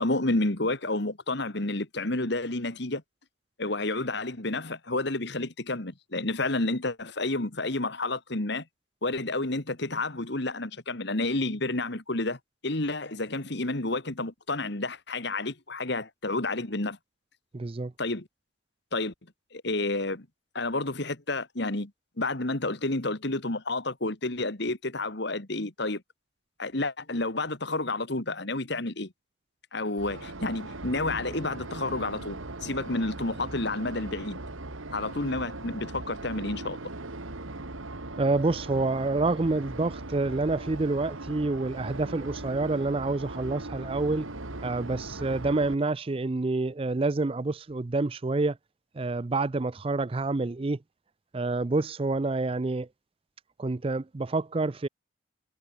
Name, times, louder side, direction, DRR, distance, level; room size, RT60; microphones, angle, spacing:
voice 1, 0.0-3.0 3.6-8.6 9.0-17.0 18.0-18.3 18.9-19.1 19.5-20.3 20.5-21.9 22.2-26.0 26.6-29.1 29.7-34.4 34.9-36.8, left 2 dB, 55° left, 2.0 m, -30 dB
voice 2, 17.5-17.9 38.2-44.3 44.6-48.6 49.0-50.8 51.3-52.9 53.6-54.9, right 3 dB, 30° right, 0.5 m, -28 dB
sound 1, 30.0-45.7, right 2 dB, 85° right, 2.3 m, -39 dB
head